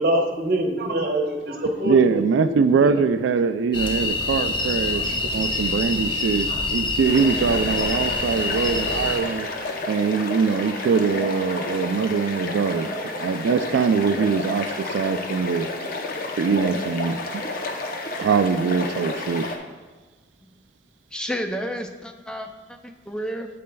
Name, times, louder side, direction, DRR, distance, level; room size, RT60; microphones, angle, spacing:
voice 1, 0.0-3.0 4.9-5.6 6.5-6.6, right 1 dB, 55° right, 2 dB, 1.1 m, -26 dB
voice 2, 1.8-9.5 9.9-12.9 13.2-15.7 16.4-17.2 18.2-19.5, right 5 dB, 85° right, 10 dB, 0.3 m, -22 dB
sound 1, 3.7-9.2, left 3 dB, 25° left, 0.9 m, -26 dB
sound 2, 7.0-19.6, left 2 dB, 50° left, 0.7 m, -31 dB
voice 3, 21.1-23.5, equal, 5° left, 5 dB, 0.5 m, -31 dB
8.4 x 7.6 x 2.3 m, 1.3 s
head